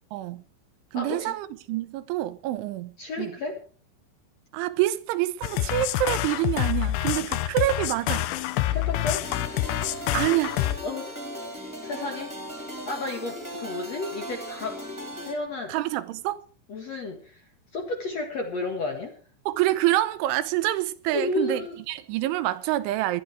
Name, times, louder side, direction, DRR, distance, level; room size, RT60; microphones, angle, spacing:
voice 1, 0.1-0.4 0.9-3.3 4.5-8.3 10.1-10.6 15.7-16.4 19.5-21.6 21.9-23.2, right 15 dB, 80° right, 3.2 m, -27 dB
voice 2, 0.9-1.4 3.0-3.6 8.7-9.3 10.8-11.1 11.8-12.4 12.8-14.8 15.2-15.7 16.7-17.4 17.7-19.2 21.1-21.8, left 3 dB, 50° left, 2.1 m, -32 dB
sound 1, 5.4-10.8, left 15 dB, 75° left, 2.6 m, -27 dB
sound 2, 9.2-15.3, equal, 5° right, 2.8 m, -37 dB
18.5 x 12.0 x 4.7 m
omnidirectional pair, 5.5 m